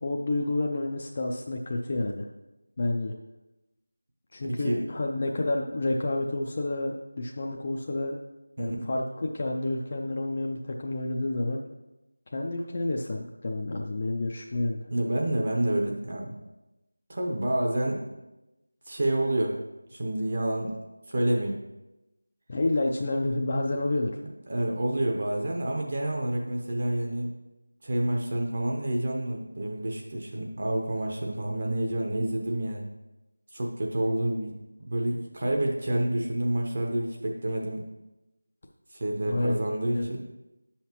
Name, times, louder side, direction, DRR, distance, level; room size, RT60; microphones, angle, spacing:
voice 1, 0.0-2.3 2.8-3.1 4.3-8.2 8.6-11.6 12.3-14.9 22.5-24.2 39.3-39.6 39.9-40.1, left 2 dB, 35° left, 0 dB, 0.4 m, -29 dB
voice 2, 4.4-4.9 8.6-8.8 14.9-16.3 17.1-18.2 18.9-19.6 19.9-20.7 21.1-21.6 24.5-27.3 27.8-32.9 33.5-34.5 34.8-37.8 38.9-40.2, right 1 dB, 45° right, 0 dB, 0.9 m, -28 dB
8.9 x 5.7 x 3.0 m, 0.99 s
figure-of-eight pair, 175°, 0 cm